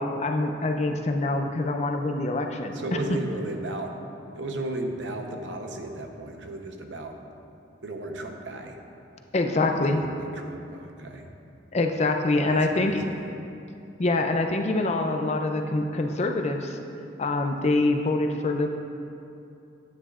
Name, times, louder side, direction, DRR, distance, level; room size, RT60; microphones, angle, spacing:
voice 1, 0.0-2.8 9.3-10.0 11.7-13.0 14.0-16.8 17.2-18.7, left 2 dB, 35° left, 4 dB, 0.5 m, -25 dB
voice 2, 2.7-4.0 4.3-7.2 7.8-8.8 9.8-11.3 12.4-13.2, right 2 dB, 75° right, 3 dB, 0.8 m, -35 dB
10.0 x 9.2 x 2.4 m, 2.7 s
head